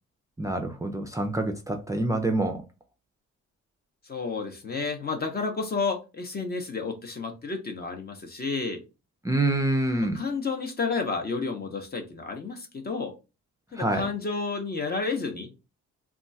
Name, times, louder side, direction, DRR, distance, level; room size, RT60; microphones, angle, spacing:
voice 1, 0.4-2.6 9.2-10.2 13.7-14.1, right 2 dB, 10° right, 0.4 m, -26 dB
voice 2, 4.0-8.8 10.0-13.1 13.7-15.5, left 4 dB, 30° left, 0.7 m, -31 dB
2.3 x 2.2 x 3.9 m
cardioid pair, 90°, 30 cm